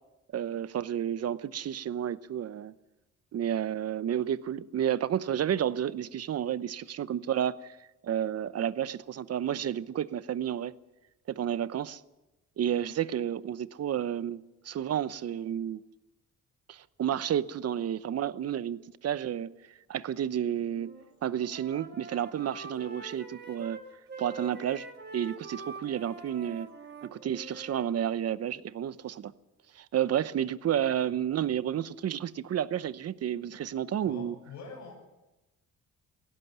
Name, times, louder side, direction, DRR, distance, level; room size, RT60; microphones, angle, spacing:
voice 1, 0.3-2.7 3.3-7.8 8.0-10.7 11.3-12.0 12.6-15.8 16.7-19.5 19.9-20.9 21.2-23.8 24.2-24.9 25.1-26.7 27.0-29.3 29.7-34.3, right 10 dB, 55° right, 0.9 m, -31 dB
Wind instrument woodwind instrument, 20.6-21.0 21.3-27.9, right 3 dB, 35° right, 4.4 m, -45 dB
voice 2, 34.1-34.9, left 4 dB, 85° left, 7.2 m, -44 dB
17.0 x 16.0 x 9.5 m
cardioid pair, 90°, 30 cm